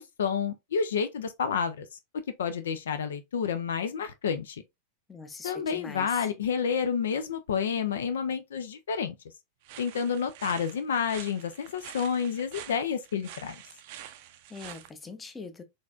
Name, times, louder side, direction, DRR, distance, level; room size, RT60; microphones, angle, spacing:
voice 1, 0.0-1.9 2.4-4.6 5.4-9.1 9.8-13.6, left 6 dB, 65° left, 0.5 m, -29 dB
voice 2, 5.1-6.3 14.5-15.6, left 4 dB, 15° left, 0.7 m, -42 dB
sound 1, 9.6-14.9, right 11 dB, 50° right, 0.5 m, -46 dB
4.1 x 3.3 x 2.4 m
figure-of-eight pair, 90°, 0 cm